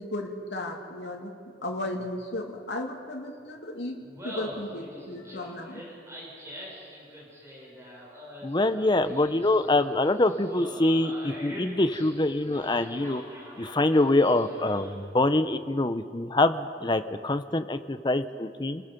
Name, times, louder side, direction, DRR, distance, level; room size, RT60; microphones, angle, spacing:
voice 1, 0.0-1.3 1.6-4.0 4.2-5.8, left 1 dB, 70° left, 0 dB, 2.8 m, -35 dB
Laughter, 4.0-15.1, equal, 15° right, 6.8 m, -44 dB
voice 2, 8.4-13.2 13.6-18.8, left 2 dB, 25° left, 10 dB, 0.8 m, -25 dB
29.5 x 21.0 x 5.4 m, 2.3 s
head